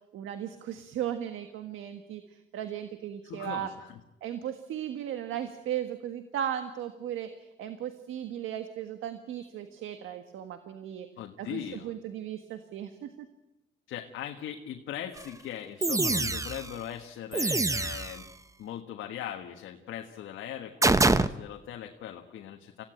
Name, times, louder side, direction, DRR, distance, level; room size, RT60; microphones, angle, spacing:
voice 1, 0.1-3.7 4.2-11.1 11.4-13.3, right 10 dB, 85° right, 8 dB, 1.6 m, -36 dB
voice 2, 3.3-4.0 11.2-11.9 13.9-18.3 18.6-22.8, left 10 dB, 80° left, 3 dB, 1.6 m, -40 dB
sound 1, 15.2-15.3 15.8-16.7 17.3-18.2 20.8-21.3, right 2 dB, 15° right, 0.9 m, -25 dB
25.5 x 16.5 x 9.0 m, 0.99 s
cardioid pair, 90°, 20 cm